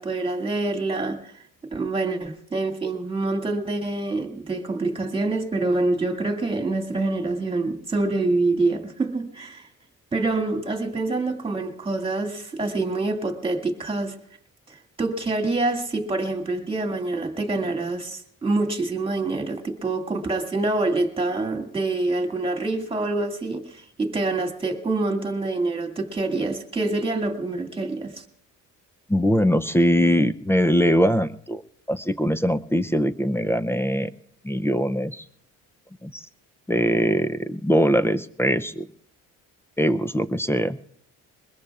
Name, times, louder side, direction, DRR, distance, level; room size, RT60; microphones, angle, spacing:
voice 1, 0.0-1.3 1.7-9.7 10.1-14.2 14.7-28.2, right 2 dB, 15° right, 2.1 m, -26 dB
voice 2, 29.1-31.6 31.9-34.1 34.4-35.2 36.0-36.2 36.7-38.9 39.8-40.8, equal, 5° left, 0.5 m, -22 dB
22.0 x 21.0 x 2.4 m
cardioid pair, 125°, 33 cm